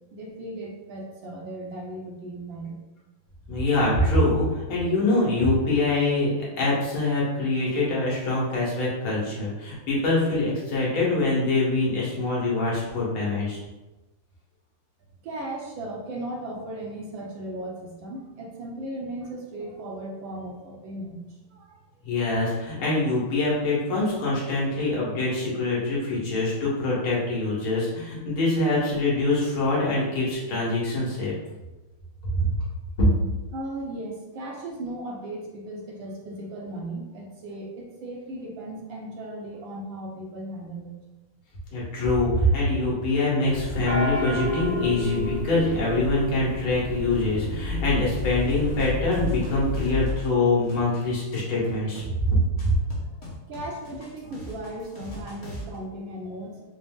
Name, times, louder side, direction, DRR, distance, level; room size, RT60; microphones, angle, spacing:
voice 1, 0.1-2.8 15.2-21.8 33.5-40.9 52.6-52.7 53.5-56.6, right 1 dB, 70° right, -1 dB, 1.3 m, -36 dB
voice 2, 3.5-13.6 22.0-31.3 32.3-32.5 33.0-33.1 41.7-52.8, left 2 dB, 70° left, -6 dB, 2.1 m, -24 dB
sound 1, 43.4-50.1, left 2 dB, 55° right, 1.0 m, -30 dB
sound 2, 48.2-55.8, equal, 40° left, 1.1 m, -42 dB
5.1 x 2.0 x 3.6 m, 1.1 s
omnidirectional pair, 2.4 m